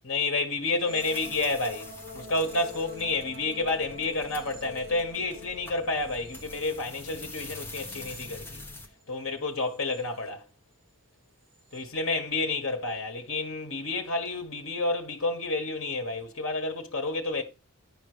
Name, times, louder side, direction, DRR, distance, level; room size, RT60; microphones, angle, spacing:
voice 1, 0.0-8.6 9.1-10.4 11.7-17.4, left 3 dB, 65° left, 1.6 m, -30 dB
sound 1, 0.8-9.0 9.4-10.3 11.5-11.8, left 3 dB, 25° right, 2.2 m, -47 dB
sound 2, 1.0-8.9, left 2 dB, 10° left, 1.1 m, -45 dB
10.0 x 5.3 x 5.0 m
head